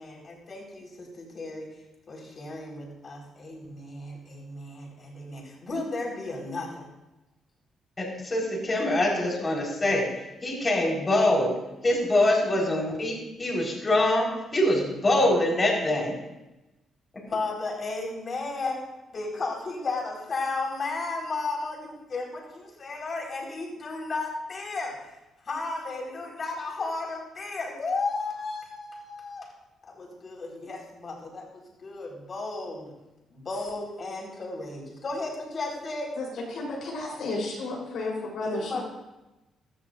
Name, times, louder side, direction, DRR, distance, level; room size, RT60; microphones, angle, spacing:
voice 1, 0.0-1.7 2.1-6.9 17.3-18.8 19.1-24.9 25.4-29.5 29.8-32.9 33.3-36.1 38.4-38.8, left 3 dB, 45° left, -1 dB, 4.9 m, -34 dB
voice 2, 8.0-10.1 10.4-11.5 11.8-16.2, left 1 dB, 25° left, -3 dB, 4.6 m, -24 dB
voice 3, 36.2-38.8, left 2 dB, 70° left, -3 dB, 4.0 m, -32 dB
16.0 x 12.5 x 2.7 m, 1.0 s
cardioid pair, 90°, 0 cm